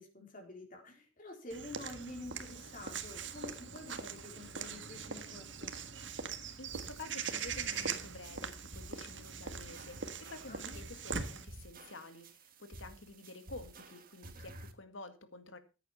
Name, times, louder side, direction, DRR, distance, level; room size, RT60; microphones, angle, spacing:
voice 1, 0.0-5.7 10.5-10.8, left 2 dB, 40° left, 2 dB, 4.0 m, -49 dB
Walk footsteps / Bird vocalization bird call bird song, 1.5-11.5, right 6 dB, 65° right, 1.6 m, -42 dB
voice 2, 6.6-15.6, left 3 dB, 75° left, 9 dB, 2.1 m, -50 dB
sound 1, 6.7-14.7, right 2 dB, 45° right, 1.7 m, -53 dB
14.5 x 10.0 x 4.4 m, 0.32 s
head